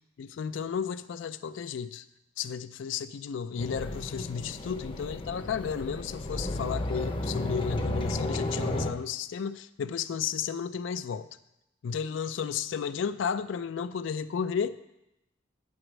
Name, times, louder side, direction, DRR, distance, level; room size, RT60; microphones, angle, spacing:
voice 1, 0.2-2.0 2.4-11.3 11.8-14.8, left 7 dB, 70° left, 13 dB, 0.4 m, -33 dB
sound 1, 3.6-8.9, left 1 dB, 25° left, 0.6 m, -33 dB
8.8 x 4.8 x 6.1 m, 0.88 s
head